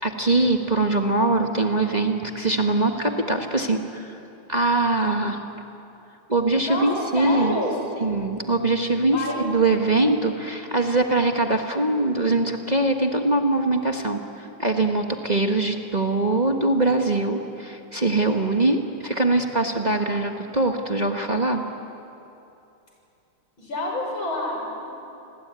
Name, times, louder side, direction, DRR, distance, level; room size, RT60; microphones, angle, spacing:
voice 1, 0.0-4.2 4.5-5.4 6.3-7.6 8.0-21.6, right 2 dB, 25° right, 3 dB, 1.3 m, -22 dB
voice 2, 6.7-7.8 9.1-9.4 23.6-24.9, left 1 dB, 65° left, -1 dB, 7.0 m, -28 dB
29.0 x 21.0 x 9.7 m, 2.8 s
omnidirectional pair, 2.4 m